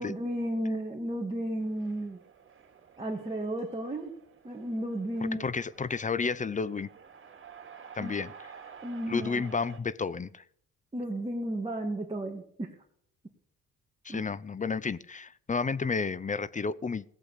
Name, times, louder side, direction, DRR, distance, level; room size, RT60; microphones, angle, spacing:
voice 1, 0.0-2.2 3.0-4.1 4.4-5.4 8.0-8.1 8.8-9.4 10.9-12.8 14.1-14.3, right 1 dB, 20° right, -1 dB, 2.3 m, -33 dB
sound 1, 1.6-9.8, right 7 dB, 40° right, 2.9 m, -51 dB
voice 2, 5.4-6.9 7.9-8.5 9.1-10.4 14.0-17.0, left 5 dB, 25° left, 19 dB, 0.6 m, -31 dB
17.5 x 7.9 x 8.3 m, 0.66 s
cardioid pair, 90°, 30 cm